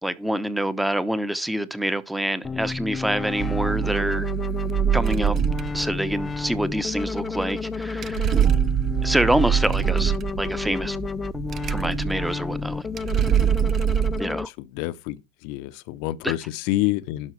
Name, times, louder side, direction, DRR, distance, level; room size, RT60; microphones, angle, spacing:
voice 1, 0.0-4.3 4.9-5.4 5.7-8.3 9.0-11.0 11.7-12.9 14.2-14.5 16.2-16.3, right 1 dB, 5° right, 1.0 m, -26 dB
sound 1, 2.4-14.5, left 4 dB, 20° left, 0.5 m, -31 dB
sound 2, 3.4-14.2, right 10 dB, 35° right, 0.4 m, -24 dB
voice 2, 14.6-17.3, left 17 dB, 60° left, 0.8 m, -28 dB
11.5 x 5.6 x 4.7 m
hypercardioid pair, 90°, 0 cm